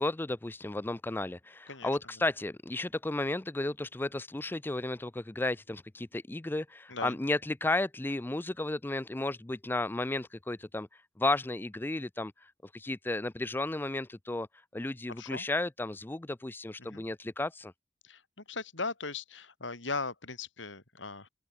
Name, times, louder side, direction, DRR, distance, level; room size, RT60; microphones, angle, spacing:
voice 1, 0.0-10.9 11.2-14.5 14.7-17.7, left 2 dB, 10° left, 0.4 m, -33 dB
voice 2, 18.0-21.3, left 3 dB, 90° left, 5.2 m, -38 dB
open air
head